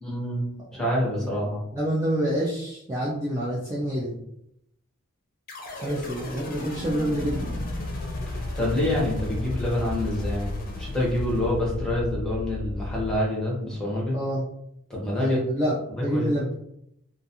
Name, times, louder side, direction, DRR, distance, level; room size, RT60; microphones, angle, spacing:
voice 1, 0.0-1.6 8.3-10.5 10.8-14.1 14.9-15.4 16.1-16.3, left 1 dB, 5° left, -5 dB, 0.8 m, -27 dB
voice 2, 1.7-4.2 5.7-7.6 14.1-14.5 15.2-16.5, equal, 15° right, -7 dB, 0.4 m, -27 dB
sound 1, 5.5-11.9, left 1 dB, 40° left, 0.6 m, -35 dB
sound 2, 7.2-13.2, left 2 dB, 85° left, 0.3 m, -34 dB
2.4 x 2.3 x 2.7 m, 0.76 s
head